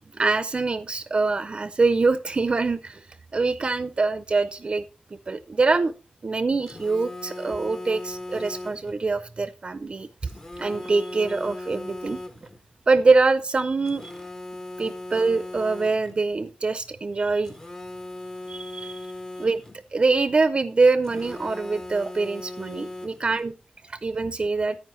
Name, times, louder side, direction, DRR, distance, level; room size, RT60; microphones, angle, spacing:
voice 1, 0.1-3.0 3.3-4.9 5.3-5.9 6.2-10.1 10.6-12.2 12.9-14.0 14.8-17.5 18.5-19.1 19.4-19.6 19.9-23.5 23.9-24.8, right 3 dB, 40° right, 12 dB, 0.4 m, -24 dB
Telephone, 6.7-9.0 10.3-12.6 13.9-16.2 17.4-19.8 21.0-23.4, left 2 dB, 20° left, 0.7 m, -38 dB
9.5 x 9.3 x 3.1 m, 0.33 s
wide cardioid pair, 145°, 3 cm